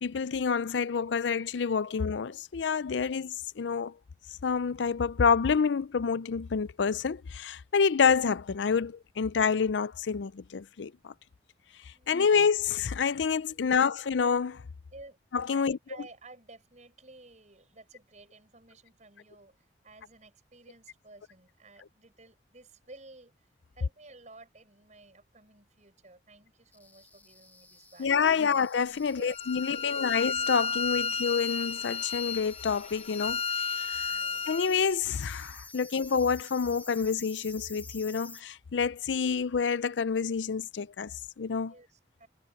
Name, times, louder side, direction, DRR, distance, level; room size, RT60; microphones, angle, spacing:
voice 1, 0.0-3.9 4.4-11.1 12.1-14.6 15.3-15.8 28.0-34.1 34.5-41.7, left 6 dB, 90° left, 0.5 m, -28 dB
voice 2, 11.9-12.3 13.3-14.1 14.9-15.2 15.5-23.5 23.7-28.6 29.2-30.2 34.1-34.4 41.6-42.3, right 2 dB, 40° right, 6.9 m, -54 dB
sound 1, 26.7-38.4, left 3 dB, 10° left, 1.7 m, -51 dB
Bowed string instrument, 29.3-34.7, left 5 dB, 35° left, 0.8 m, -32 dB
head